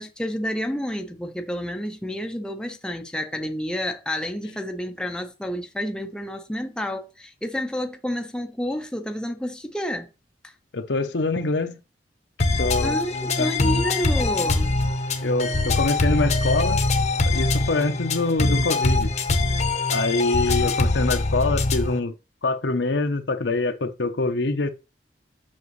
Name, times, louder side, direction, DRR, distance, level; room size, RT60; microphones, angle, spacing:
voice 1, 0.0-10.1 10.4-10.5 12.5-14.7 20.5-20.7, equal, 5° left, 0.6 m, -30 dB
voice 2, 10.7-11.8 12.6-13.0 13.4-13.5 15.2-16.9 17.3-19.1 19.9-22.1 22.4-24.7, left 3 dB, 80° left, 0.9 m, -24 dB
sound 1, 12.4-22.0, left 2 dB, 40° left, 0.9 m, -23 dB
7.4 x 6.0 x 3.2 m
head